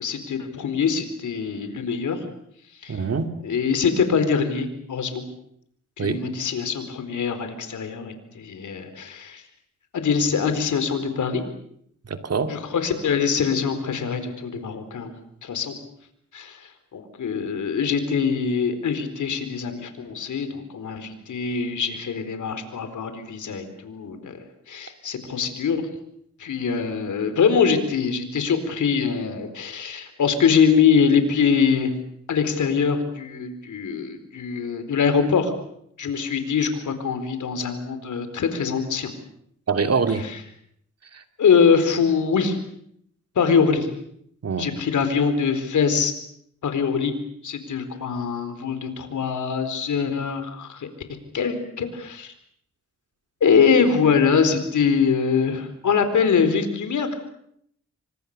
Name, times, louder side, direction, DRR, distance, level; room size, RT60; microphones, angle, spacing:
voice 1, 0.0-2.2 2.8-3.0 3.4-5.2 6.0-9.4 9.9-11.4 12.5-15.1 15.4-15.7 16.3-24.4 24.7-25.8 26.4-31.9 32.3-35.5 36.0-39.1 41.4-42.6 43.4-43.9 44.6-46.1 46.6-47.1 47.4-50.9 51.3-52.3 53.4-57.1, left 6 dB, 85° left, 9 dB, 4.3 m, -23 dB
voice 2, 2.9-3.3 6.0-6.2 12.0-12.6 39.7-40.3 41.1-41.2 44.4-44.7, right 5 dB, 55° right, 7 dB, 2.7 m, -24 dB
27.5 x 25.0 x 6.7 m, 0.69 s
cardioid pair, 80°, 29 cm